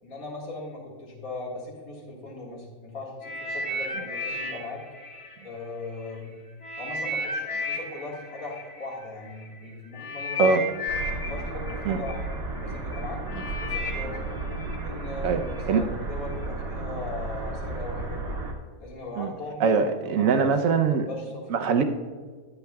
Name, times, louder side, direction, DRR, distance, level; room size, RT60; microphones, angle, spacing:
voice 1, 0.0-4.8 5.4-6.4 6.8-10.8 11.2-12.2 12.6-13.2 13.5-14.2 14.8-18.2 18.8-19.8 20.2-20.5 20.8-21.7, left 2 dB, 60° left, -3 dB, 2.4 m, -39 dB
sound 1, 3.2-6.1 6.6-15.6 16.3-16.4, left 1 dB, 20° left, 1.5 m, -34 dB
sound 2, 10.9-18.5, right 2 dB, 45° right, 1.4 m, -33 dB
voice 2, 19.6-21.1 21.5-21.8, right 5 dB, 65° right, 7 dB, 1.0 m, -22 dB
11.5 x 8.8 x 2.3 m, 1.5 s
omnidirectional pair, 1.7 m